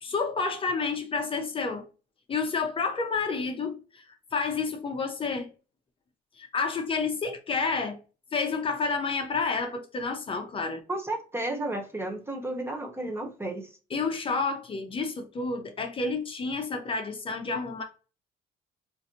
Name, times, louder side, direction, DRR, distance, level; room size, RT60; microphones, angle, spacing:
voice 1, 0.0-1.9 2.3-4.0 4.3-5.5 6.4-8.0 8.3-10.8 13.9-17.8, left 4 dB, 30° left, 0.6 m, -30 dB
voice 2, 10.9-13.7, right 2 dB, 15° right, 0.6 m, -32 dB
3.9 x 2.5 x 2.8 m
cardioid pair, 110°, 17 cm